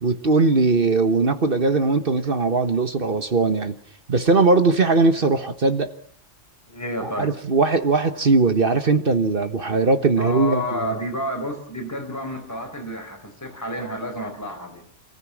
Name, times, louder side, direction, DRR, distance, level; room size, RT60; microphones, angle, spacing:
voice 1, 0.0-3.8 4.1-5.9 7.2-11.0, right 3 dB, 50° right, 1.5 m, -20 dB
voice 2, 6.7-7.3 10.1-14.8, left 1 dB, 15° left, 4.9 m, -30 dB
28.0 x 15.5 x 7.3 m
omnidirectional pair, 1.2 m